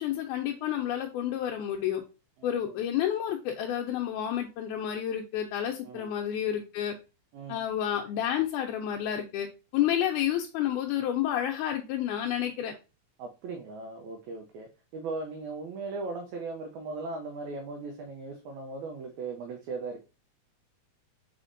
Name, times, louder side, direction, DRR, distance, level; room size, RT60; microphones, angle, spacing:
voice 1, 0.0-2.0 2.4-6.9 7.5-9.5 9.7-12.7, left 10 dB, 80° left, 2 dB, 1.9 m, -30 dB
voice 2, 2.4-2.8 5.8-6.1 7.3-7.7 13.2-20.0, right 3 dB, 75° right, 2 dB, 1.9 m, -38 dB
5.0 x 4.1 x 2.5 m, 0.30 s
omnidirectional pair, 3.6 m